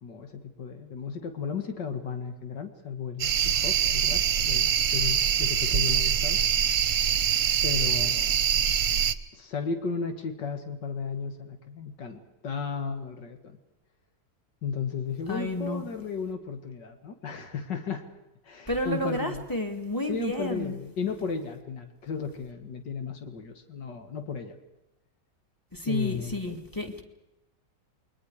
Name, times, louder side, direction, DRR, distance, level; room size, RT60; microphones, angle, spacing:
voice 1, 0.0-6.4 7.6-8.4 9.3-13.6 14.6-18.1 18.4-19.5 20.1-24.6 25.8-26.4, left 5 dB, 80° left, 7 dB, 2.6 m, -34 dB
sound 1, 3.2-9.1, right 9 dB, 55° right, 1.2 m, -24 dB
voice 2, 15.3-15.8 18.7-20.7 25.7-27.0, left 1 dB, 10° left, 6 dB, 2.6 m, -31 dB
29.0 x 22.0 x 5.0 m, 0.94 s
omnidirectional pair, 1.9 m